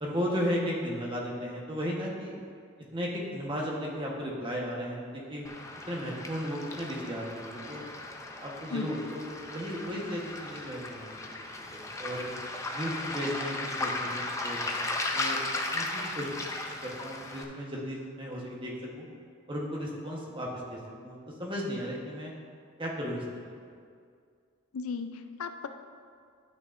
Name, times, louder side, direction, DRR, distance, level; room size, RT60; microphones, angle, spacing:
voice 1, 0.0-2.4 2.9-5.0 5.3-5.5 5.9-7.8 8.4-12.3 12.7-15.4 15.7-16.4 16.8-19.1 19.5-22.3 22.8-23.7, equal, 25° right, -3 dB, 1.1 m, -35 dB
Waves surf, 5.4-17.4, left 2 dB, 15° left, 0.5 m, -36 dB
voice 2, 24.7-25.7, left 5 dB, 80° left, 8 dB, 0.4 m, -35 dB
12.0 x 6.3 x 2.6 m, 2.2 s
head